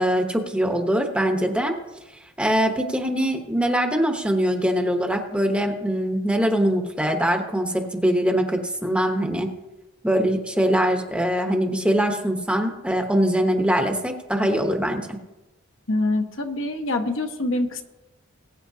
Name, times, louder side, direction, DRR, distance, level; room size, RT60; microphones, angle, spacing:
voice 1, 0.0-1.8 2.4-9.5 10.0-15.2, equal, 5° right, 4 dB, 0.9 m, -22 dB
voice 2, 15.9-17.8, left 2 dB, 70° left, 4 dB, 1.2 m, -25 dB
20.5 x 8.8 x 2.8 m, 1.0 s
head